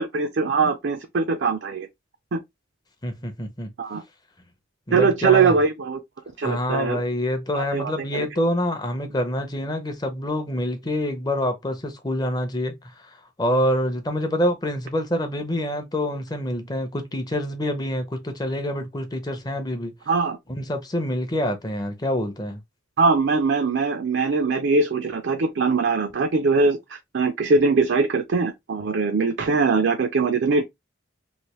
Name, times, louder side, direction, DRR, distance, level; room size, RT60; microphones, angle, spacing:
voice 1, 0.0-1.9 2.3-2.4 3.8-4.0 4.9-6.0 6.4-7.0 7.5-8.3 20.1-20.4 23.0-30.6, right 4 dB, 65° right, 0.4 m, -22 dB
voice 2, 3.0-3.7 4.9-5.6 6.4-19.9 20.5-22.6, equal, 20° left, 0.6 m, -26 dB
3.1 x 2.5 x 3.0 m
head